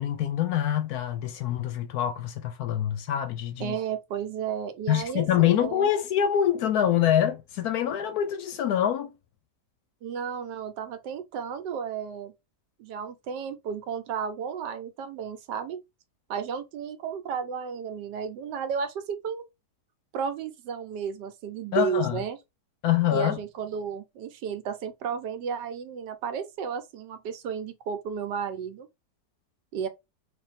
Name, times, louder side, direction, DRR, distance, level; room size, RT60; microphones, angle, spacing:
voice 1, 0.0-3.7 4.9-9.1 21.7-22.2 22.8-23.4, left 10 dB, 70° left, 1.0 m, -25 dB
voice 2, 3.6-5.9 10.0-12.3 12.8-15.8 16.3-19.5 20.1-22.4 23.1-28.9 29.7-29.9, right 7 dB, 80° right, 1.3 m, -33 dB
3.5 x 2.5 x 4.0 m
omnidirectional pair, 1.9 m